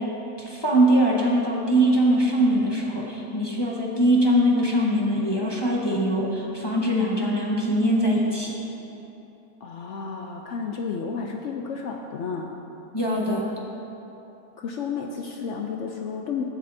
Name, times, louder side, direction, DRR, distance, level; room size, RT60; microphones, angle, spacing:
voice 1, 0.4-8.5 12.9-13.4, right 1 dB, 20° left, -4 dB, 0.8 m, -22 dB
voice 2, 9.6-12.6 14.6-16.4, left 5 dB, 70° left, 2 dB, 0.7 m, -32 dB
15.0 x 8.6 x 2.7 m, 3.0 s
omnidirectional pair, 1.7 m